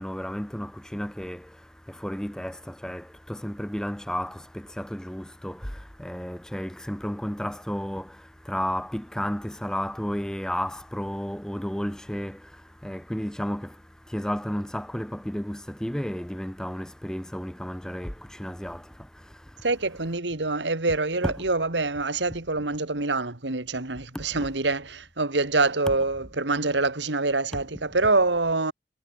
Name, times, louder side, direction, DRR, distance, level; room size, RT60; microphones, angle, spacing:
voice 1, 0.0-19.6 21.2-21.3 24.1-24.5 27.5-27.6, equal, 5° left, 0.6 m, -33 dB
voice 2, 19.6-28.7, right 3 dB, 90° right, 2.4 m, -25 dB
head